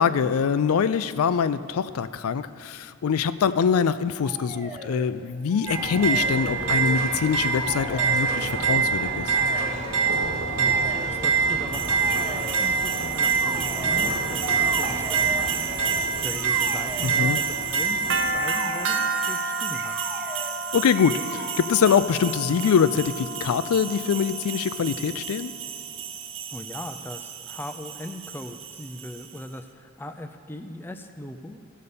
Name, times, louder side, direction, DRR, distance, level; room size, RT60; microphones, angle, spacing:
voice 1, 0.0-9.3 17.2-17.4 20.7-25.5, left 6 dB, 80° left, 14 dB, 0.4 m, -24 dB
sound 1, 4.2-5.1 5.5-7.0 7.3-8.6 9.3-9.8 10.6-11.3 12.0-12.7 13.2-14.0 14.5-15.5 16.3-17.5 18.4-18.9 19.7-20.6 20.9-21.6, right 1 dB, 10° right, 0.9 m, -38 dB
sound 2, 5.7-18.3, right 5 dB, 90° right, 1.8 m, -25 dB
voice 2, 10.5-14.4 14.7-17.4 17.7-19.9 26.5-31.6, left 1 dB, 10° left, 7 dB, 0.3 m, -39 dB
sound 3, 11.7-29.4, right 5 dB, 60° right, 0.7 m, -32 dB
15.0 x 5.5 x 6.8 m, 2.4 s
head